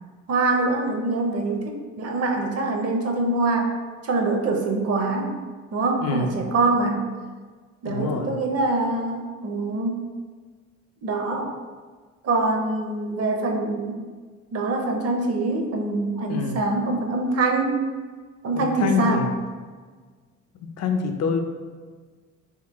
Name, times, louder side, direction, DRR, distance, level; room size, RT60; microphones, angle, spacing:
voice 1, 0.3-3.7 4.0-5.4 5.7-7.0 7.8-10.0 11.0-11.5 12.2-14.1 14.5-17.8 18.4-19.2, right 3 dB, 55° right, 2 dB, 0.7 m, -24 dB
voice 2, 6.0-6.4 7.9-8.4 16.3-16.6 18.6-19.3 20.6-21.4, left 5 dB, 60° left, 5 dB, 0.5 m, -26 dB
3.7 x 2.7 x 2.9 m, 1.5 s
cardioid pair, 90°, 30 cm